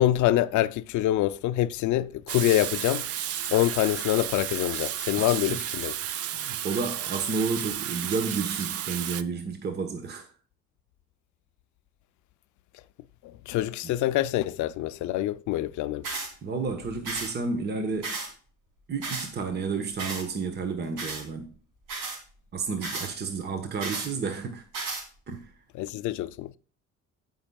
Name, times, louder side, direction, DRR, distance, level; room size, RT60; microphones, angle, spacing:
voice 1, 0.0-3.1 3.5-6.0 13.5-16.1 25.8-26.5, left 14 dB, 85° left, 0.6 m, -25 dB
Water tap faucet / Sink (filling or washing), 2.3-9.2, right 11 dB, 55° right, 0.6 m, -32 dB
voice 2, 5.2-5.6 6.3-10.3 13.8-13.9 16.4-18.2 18.9-21.5 22.5-24.6 25.3-25.5, right 4 dB, 35° right, 1.2 m, -31 dB
sound 1, 16.0-16.3 17.0-17.3 18.0-18.3 19.0-19.3 20.0-20.2 21.0-21.2 21.9-22.2 22.8-23.1 23.8-24.1 24.7-25.0, right 3 dB, 85° right, 3.3 m, -33 dB
16.0 x 5.6 x 2.3 m
cardioid pair, 145°, 29 cm